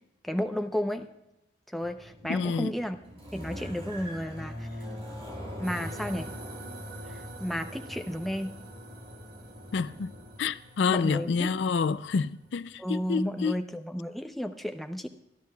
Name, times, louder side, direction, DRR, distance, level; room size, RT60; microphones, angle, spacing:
voice 1, 0.2-1.1 1.7-3.0 3.3-4.7 5.6-6.3 7.1-8.5 10.9-11.5 12.8-15.1, equal, ahead, 0.6 m, -32 dB
sound 1, 1.8-10.4, equal, 35° right, 6.0 m, -42 dB
voice 2, 2.3-2.7 9.7-10.1 10.4-13.6, left 5 dB, 80° left, 0.4 m, -28 dB
sound 2, 5.6-13.3, right 3 dB, 55° right, 2.4 m, -49 dB
26.0 x 11.0 x 2.3 m
head